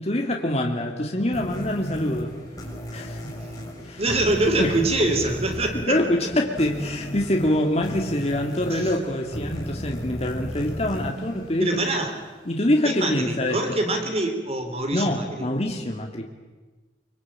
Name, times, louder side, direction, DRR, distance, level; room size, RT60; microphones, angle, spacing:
voice 1, 0.0-2.4 2.9-3.3 3.8-4.0 4.6-5.1 5.7-11.9 12.5-13.6 14.9-16.2, left 1 dB, 35° left, 2 dB, 2.2 m, -25 dB
sound 1, 1.3-12.5, equal, 20° left, 6.7 m, -35 dB
voice 2, 4.0-6.0 8.7-8.9 11.6-12.1 12.8-15.5, right 2 dB, 35° right, 5 dB, 3.2 m, -24 dB
24.5 x 24.0 x 8.8 m, 1.3 s
head